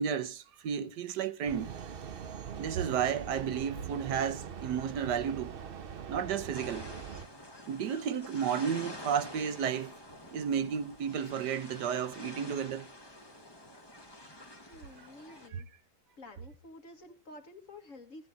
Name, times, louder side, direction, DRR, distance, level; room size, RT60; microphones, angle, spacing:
voice 1, 0.0-1.7 2.6-5.6 6.1-6.9 7.7-9.9 10.3-12.9 15.5-15.6, right 8 dB, 75° right, 1.4 m, -32 dB
sound 1, 1.5-7.3, right 7 dB, 50° right, 0.7 m, -42 dB
sound 2, 6.5-15.5, left 1 dB, 15° left, 1.2 m, -48 dB
voice 2, 14.6-15.7 16.2-18.3, left 2 dB, 45° left, 2.0 m, -51 dB
16.0 x 9.7 x 3.8 m
omnidirectional pair, 1.9 m